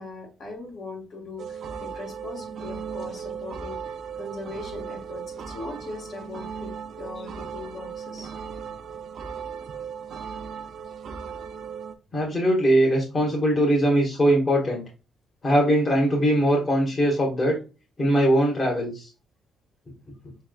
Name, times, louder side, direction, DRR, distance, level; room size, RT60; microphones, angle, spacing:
voice 1, 0.0-8.3, left 2 dB, 55° left, 0 dB, 1.8 m, -39 dB
sound 1, 1.4-11.9, right 6 dB, 60° right, 0.5 m, -37 dB
voice 2, 12.1-14.8 15.4-17.5 18.0-19.1, equal, 35° left, -2 dB, 1.5 m, -21 dB
4.3 x 3.5 x 2.3 m, 0.31 s
cardioid pair, 90°, 0 cm